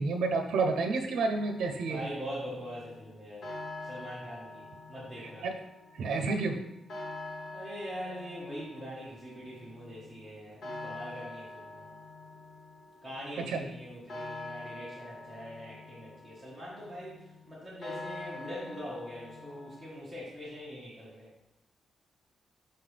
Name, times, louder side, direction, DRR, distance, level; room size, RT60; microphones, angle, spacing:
voice 1, 0.0-2.1 5.2-5.5 5.9-6.6 13.5-13.6, right 3 dB, 80° right, 4 dB, 0.6 m, -30 dB
sound 1, 1.3-19.9, left 2 dB, 65° left, 1.6 m, -46 dB
voice 2, 1.9-3.5 3.8-5.5 7.5-11.9 13.0-21.3, equal, 5° left, -8 dB, 1.4 m, -43 dB
5.6 x 5.4 x 3.3 m, 0.86 s
wide cardioid pair, 145°, 0 cm